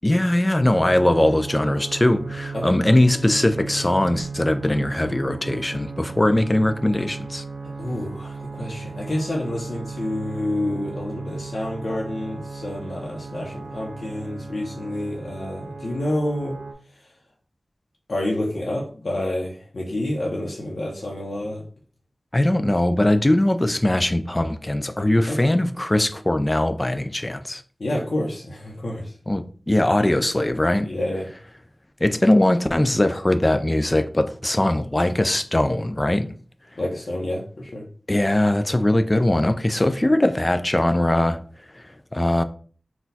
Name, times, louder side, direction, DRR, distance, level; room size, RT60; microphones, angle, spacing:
voice 1, 0.0-7.5 22.3-27.6 29.3-30.9 32.0-36.4 36.6-36.8 38.1-42.4, left 1 dB, 25° left, 0.4 m, -21 dB
sound 1, 0.6-16.7, right 4 dB, 75° right, 0.7 m, -35 dB
voice 2, 7.8-16.6 18.1-21.6 25.3-25.5 27.8-29.1 30.8-31.3 36.8-37.8, left 1 dB, 75° left, 0.7 m, -28 dB
4.1 x 2.3 x 4.0 m
wide cardioid pair, 80°, 0 cm